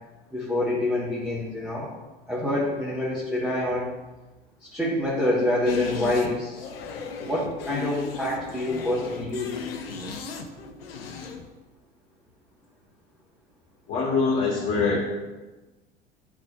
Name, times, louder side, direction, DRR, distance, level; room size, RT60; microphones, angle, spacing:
voice 1, 0.3-1.9 2.3-3.9 4.6-6.7 7.2-9.6, left 1 dB, 5° right, -8 dB, 1.3 m, -27 dB
sound 1, 5.7-11.5, left 5 dB, 75° left, 0.7 m, -35 dB
voice 2, 13.9-15.0, left 4 dB, 40° left, -4 dB, 1.6 m, -23 dB
9.7 x 4.0 x 2.4 m, 1.2 s
figure-of-eight pair, 75°, 30 cm